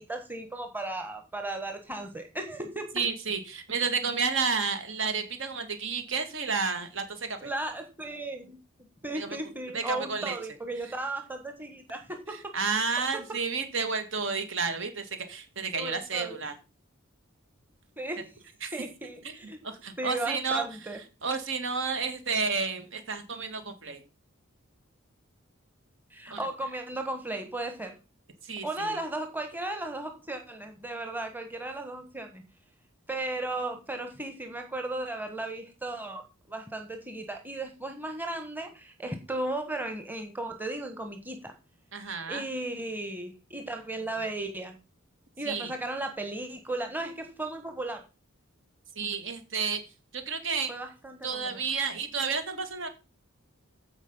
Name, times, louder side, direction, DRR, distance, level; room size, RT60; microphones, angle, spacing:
voice 1, 0.0-2.9 7.4-8.6 9.0-12.4 12.7-12.8 15.7-16.4 18.0-18.2 18.7-19.6 20.0-21.0 26.1-28.0 28.6-32.4 33.1-36.2 36.5-41.5 42.3-44.8 45.4-48.0 50.7-51.6, right 2 dB, 10° right, 5 dB, 1.5 m, -35 dB
voice 2, 2.9-7.5 9.1-9.4 9.7-10.4 12.3-16.6 18.6-18.7 19.2-19.4 19.6-20.7 21.2-24.0 26.3-26.5 28.4-29.0 41.9-42.5 45.5-45.7 49.0-49.8 50.1-50.7 51.2-52.9, right 5 dB, 60° right, 8 dB, 2.0 m, -31 dB
15.0 x 5.3 x 5.6 m, 0.32 s
head